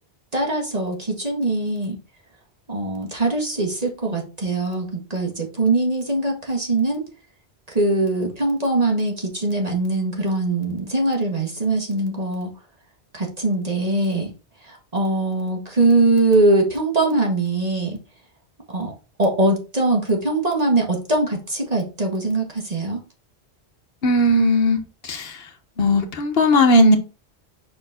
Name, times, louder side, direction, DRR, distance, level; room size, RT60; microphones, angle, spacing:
voice 1, 0.3-2.0 2.7-7.0 7.7-12.5 13.1-14.3 14.6-18.0 18.7-18.9 19.2-23.0, right 2 dB, 35° right, 1.7 m, -22 dB
voice 2, 24.0-24.8 25.0-25.4 25.8-27.0, left 1 dB, 60° left, 1.3 m, -17 dB
5.9 x 4.4 x 4.3 m
omnidirectional pair, 1.1 m